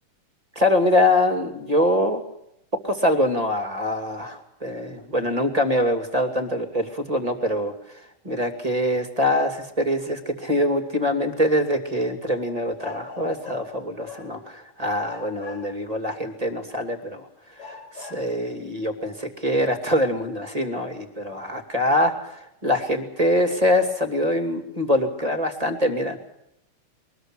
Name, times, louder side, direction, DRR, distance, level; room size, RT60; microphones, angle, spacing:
voice 1, 0.6-2.2 2.8-17.3 17.5-26.2, left 1 dB, 15° right, 6 dB, 2.1 m, -24 dB
sound 1, 11.3-11.4 12.8-13.8 14.0-14.7 15.0-16.0 16.7-16.8 17.6-18.4, left 4 dB, 45° left, 3.8 m, -42 dB
23.0 x 21.0 x 6.3 m, 0.82 s
omnidirectional pair, 3.9 m